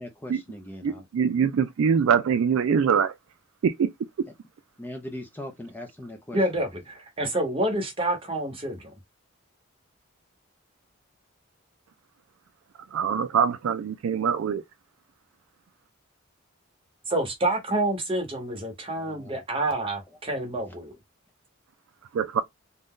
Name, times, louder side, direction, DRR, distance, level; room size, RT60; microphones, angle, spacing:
voice 1, 0.0-1.0 4.8-6.6 19.0-19.4 20.6-20.8, left 1 dB, 10° left, 0.4 m, -40 dB
voice 2, 0.8-3.2 3.6-3.9 12.9-14.6 22.1-22.4, right 7 dB, 75° right, 0.3 m, -23 dB
voice 3, 6.3-8.9 17.1-20.9, right 1 dB, 25° right, 0.9 m, -28 dB
2.6 x 2.2 x 3.5 m
head